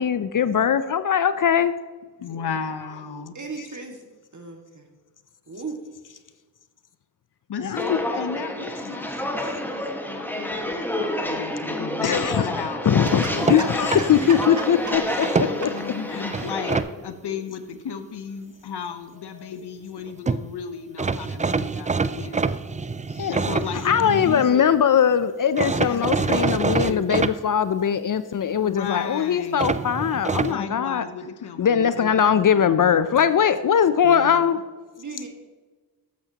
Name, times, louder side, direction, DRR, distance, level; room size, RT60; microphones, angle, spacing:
voice 1, 0.0-1.7 3.6-3.7 7.6-8.0 12.0-12.5 12.8-15.3 15.6-15.7 16.1-16.2 23.2-23.3 23.8-31.0 31.6-34.6, left 8 dB, 50° left, 0.6 m, -21 dB
voice 2, 2.2-3.4 7.5-12.8 13.3-14.6 15.0-15.1 15.4-22.6 23.3-24.6 25.6-27.3 28.6-29.8 30.4-33.0 34.0-34.4, left 6 dB, 70° left, 1.0 m, -34 dB
voice 3, 3.3-4.0 4.3-4.9 5.5-5.8 13.0-13.7 13.9-14.6 35.0-35.3, right 3 dB, 45° right, 2.0 m, -35 dB
Walk footsteps, 7.8-16.8, left 1 dB, 5° left, 1.6 m, -29 dB
sound 1, 13.1-14.5 15.0-15.8 16.3-16.9 20.0-20.1 20.3-20.4 21.0-24.5 25.6-27.3 29.6-30.5, right 4 dB, 20° right, 0.4 m, -26 dB
12.5 x 8.4 x 2.9 m
supercardioid pair, 40°, 41 cm